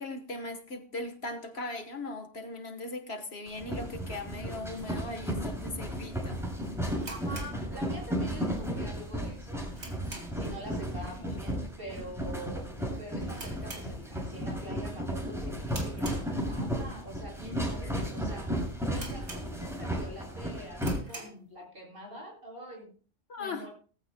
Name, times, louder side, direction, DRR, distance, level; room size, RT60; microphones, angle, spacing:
voice 1, 0.0-6.5 11.3-11.4 23.3-23.7, left 2 dB, 60° left, 7 dB, 1.6 m, -39 dB
sound 1, 3.5-20.9, equal, ahead, 7.5 m, -34 dB
sound 2, 7.0-8.3 8.6-8.7 9.2-10.6 10.9-11.2 11.4-11.5 12.2-12.5 12.8-12.9 13.3-14.5 14.8-15.1 15.6-16.8 17.3-17.4 18.0-18.1 18.4-18.5 18.9-19.9 20.3-20.4 20.7-21.5, right 2 dB, 65° right, 3.1 m, -45 dB
voice 2, 7.1-9.7 10.3-12.7 13.0-22.9 23.4-23.7, equal, 50° right, -1 dB, 7.7 m, -45 dB
19.0 x 15.5 x 2.3 m, 0.40 s
omnidirectional pair, 1.2 m